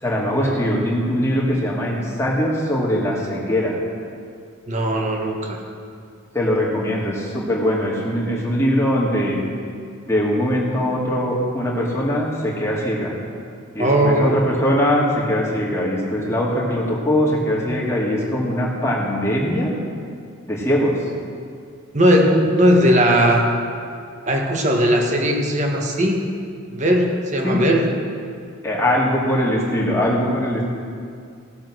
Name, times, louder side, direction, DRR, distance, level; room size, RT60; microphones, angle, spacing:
voice 1, 0.0-3.8 6.3-9.4 10.1-13.1 13.7-19.7 20.5-21.0 27.4-27.6 28.6-30.6, equal, 15° left, -4 dB, 2.1 m, -21 dB
voice 2, 4.7-5.6 13.8-14.3 21.9-23.5 24.3-26.3 26.7-27.9, equal, 35° right, 1 dB, 1.5 m, -18 dB
16.5 x 7.3 x 6.3 m, 2.3 s
head